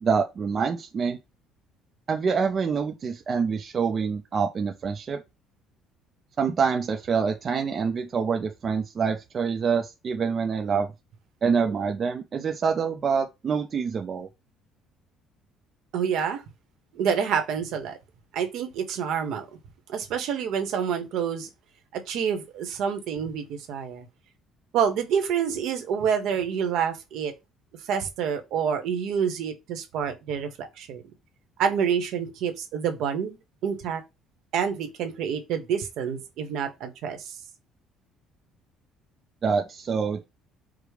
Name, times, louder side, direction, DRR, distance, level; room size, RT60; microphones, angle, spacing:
voice 1, 0.0-1.2 2.1-5.2 6.4-10.9 11.4-14.3 39.4-40.2, right 5 dB, 25° right, 0.4 m, -26 dB
voice 2, 15.9-16.4 16.9-18.0 18.3-19.5 19.9-21.5 21.9-24.1 24.7-27.3 27.8-31.0 31.6-33.4 33.6-34.0 34.5-37.3, right 7 dB, 55° right, 0.9 m, -27 dB
4.9 x 2.0 x 4.6 m
cardioid pair, 180°, 0 cm